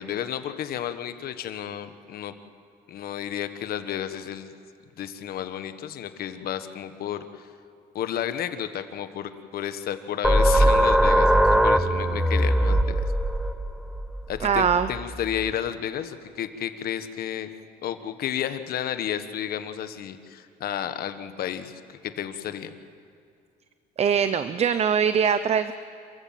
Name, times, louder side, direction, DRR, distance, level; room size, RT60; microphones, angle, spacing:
voice 1, 0.0-2.3 2.9-4.5 5.0-7.5 7.9-13.0 14.3-17.5 17.8-22.7, left 10 dB, 65° left, 10 dB, 1.4 m, -32 dB
sound 1, 10.2-15.5, right 1 dB, ahead, 0.9 m, -21 dB
voice 2, 14.4-14.9 24.0-25.7, right 7 dB, 40° right, 12 dB, 0.7 m, -22 dB
27.5 x 15.0 x 7.4 m, 2.5 s
cardioid pair, 110°, 17 cm